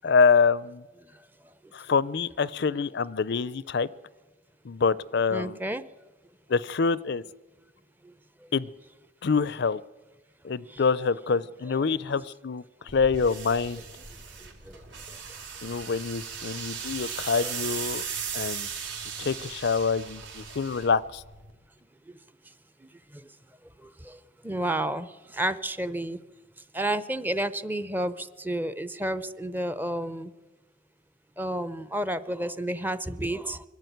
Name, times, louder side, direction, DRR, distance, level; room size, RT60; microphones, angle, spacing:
voice 1, 0.0-0.8 1.7-3.9 4.6-5.6 6.5-7.2 8.5-8.7 9.2-9.8 10.4-12.6 12.9-13.8 15.6-18.0 18.3-18.7 19.2-21.2, left 5 dB, 65° left, 19 dB, 0.5 m, -25 dB
voice 2, 5.3-5.8 10.7-10.8 11.8-12.2 14.7-14.8 17.4-17.5 23.1-23.2 23.8-26.2 26.7-30.3 31.4-33.6, right 1 dB, 10° right, 14 dB, 0.7 m, -31 dB
sound 1, 12.9-21.5, right 7 dB, 70° right, 3.1 m, -37 dB
23.0 x 12.5 x 9.3 m, 1.2 s
head